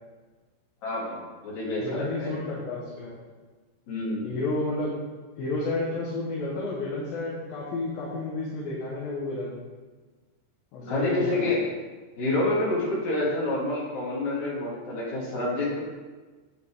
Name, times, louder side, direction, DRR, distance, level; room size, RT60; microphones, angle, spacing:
voice 1, 0.8-2.3 3.9-4.3 10.8-11.6 12.2-15.8, left 2 dB, 40° left, -8 dB, 4.4 m, -28 dB
voice 2, 1.8-3.2 4.2-4.9 5.4-9.6 10.7-11.6, left 2 dB, 60° left, -6 dB, 2.8 m, -31 dB
11.0 x 8.9 x 3.8 m, 1.3 s
omnidirectional pair, 5.4 m